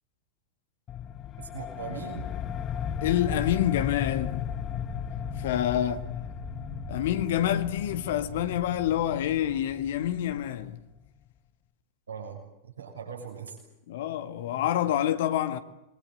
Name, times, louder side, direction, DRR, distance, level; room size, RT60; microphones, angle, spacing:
sound 1, 0.9-11.1, left 10 dB, 30° left, 0.9 m, -36 dB
voice 1, 1.4-2.3 12.1-13.6, right 7 dB, 70° right, 6.6 m, -40 dB
sound 2, 2.0-9.2, right 13 dB, 40° right, 4.9 m, -47 dB
voice 2, 3.0-4.5 5.4-6.2 6.9-10.8 13.9-15.6, left 11 dB, 55° left, 1.7 m, -27 dB
27.5 x 23.0 x 8.9 m
figure-of-eight pair, 90°, 0 cm